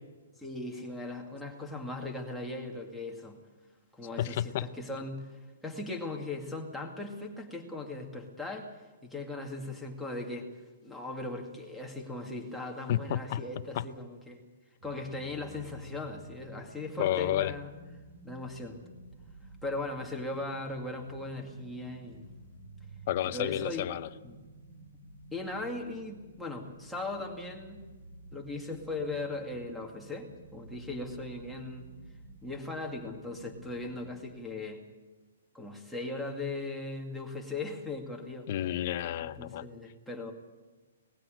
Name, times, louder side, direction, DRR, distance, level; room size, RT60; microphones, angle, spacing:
voice 1, 0.4-3.4 3.9-5.3 5.6-8.7 9.0-10.5 10.8-14.4 14.8-17.7 18.2-18.8 19.6-22.3 23.3-23.9 24.2-24.4 25.3-27.8 28.3-31.9 32.4-34.9 35.5-38.5 39.2-40.3, left 2 dB, ahead, -2 dB, 2.2 m, -38 dB
voice 2, 4.2-4.7 12.9-13.4 13.7-13.9 17.0-17.5 23.1-24.1 38.5-39.6, left 12 dB, 35° left, 11 dB, 0.7 m, -31 dB
sound 1, 14.8-34.2, right 1 dB, 85° right, 6.9 m, -51 dB
19.5 x 15.5 x 9.1 m, 1.3 s
hypercardioid pair, 165°, 0 cm